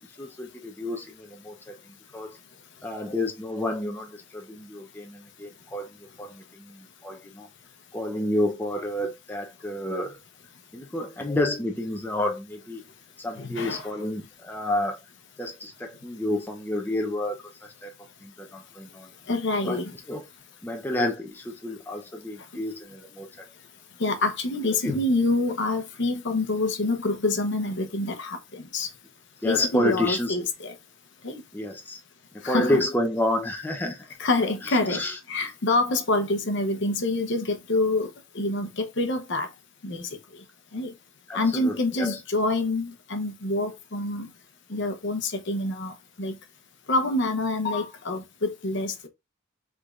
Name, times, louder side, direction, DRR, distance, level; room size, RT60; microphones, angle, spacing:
voice 1, 0.2-1.7 2.1-2.3 2.8-5.9 6.2-7.5 7.9-10.2 10.7-12.8 13.2-15.0 15.4-17.9 18.2-19.1 19.6-20.2 20.6-23.4 24.8-25.0 29.4-30.3 31.5-32.0 32.5-34.1 34.6-35.2 41.3-42.2, left 1 dB, 10° left, 0.7 m, -30 dB
voice 2, 13.4-13.9 19.3-20.0 22.5-22.6 24.0-28.9 29.4-30.7 31.2-31.4 32.4-32.8 34.2-35.0 35.3-38.1 38.3-39.5 39.8-40.1 40.7-40.9 41.3-44.3 44.7-46.3 46.9-49.1, left 2 dB, 60° left, 0.9 m, -26 dB
5.0 x 3.7 x 2.5 m
head